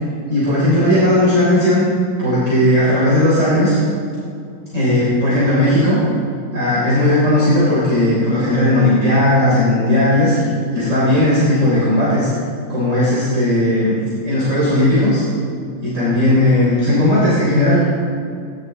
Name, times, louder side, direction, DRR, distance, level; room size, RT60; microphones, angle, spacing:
voice 1, 0.3-1.8 2.2-3.8 4.7-6.0 6.5-12.3 12.7-15.2 15.8-17.8, left 1 dB, 35° right, -11 dB, 3.8 m, -16 dB
15.5 x 10.5 x 4.0 m, 2.3 s
omnidirectional pair, 2.4 m